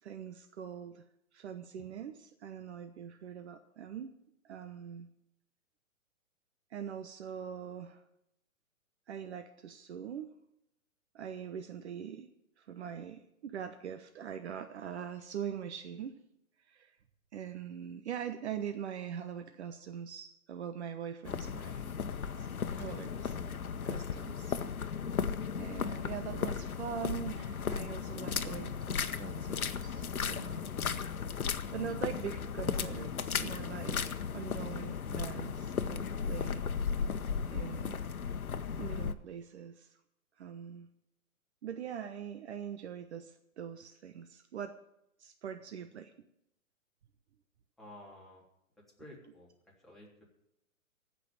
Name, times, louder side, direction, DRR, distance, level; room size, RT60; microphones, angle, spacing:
voice 1, 0.0-1.1 1.3-4.1 4.4-5.1 6.7-8.0 9.1-10.3 11.1-12.3 12.6-16.2 16.6-17.0 17.3-21.9 22.4-23.4 23.8-25.0 25.6-30.9 31.7-36.6 37.5-38.0 38.8-40.0 40.4-40.9 41.6-44.8 45.2-46.1, right 8 dB, 50° right, 8 dB, 1.1 m, -43 dB
sound 1, 21.2-39.1, left 6 dB, 85° left, 1.1 m, -36 dB
voice 2, 47.8-48.4 49.0-49.5 49.8-50.2, left 1 dB, ahead, -5 dB, 3.3 m, -52 dB
15.0 x 5.9 x 8.9 m, 0.80 s
hypercardioid pair, 135°, 42 cm